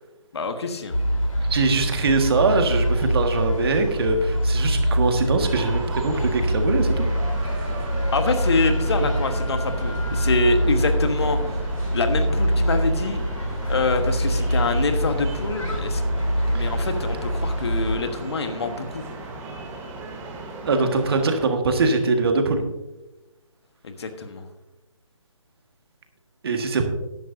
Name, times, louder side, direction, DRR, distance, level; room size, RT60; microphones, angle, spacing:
voice 1, 0.3-0.9 8.1-11.6 11.9-13.2 13.7-16.0 16.5-19.0 23.8-24.4, left 3 dB, 50° left, 7 dB, 1.3 m, -25 dB
sound 1, 0.9-18.0, equal, 70° left, 3.8 m, -24 dB
voice 2, 1.5-7.1 7.5-7.7 16.5-16.7 20.6-22.6 26.4-26.8, right 3 dB, 45° right, 5 dB, 1.6 m, -22 dB
sound 2, 5.4-21.5, right 2 dB, 15° right, 1.3 m, -36 dB
14.0 x 11.0 x 2.7 m, 1.0 s
figure-of-eight pair, 145°, 17 cm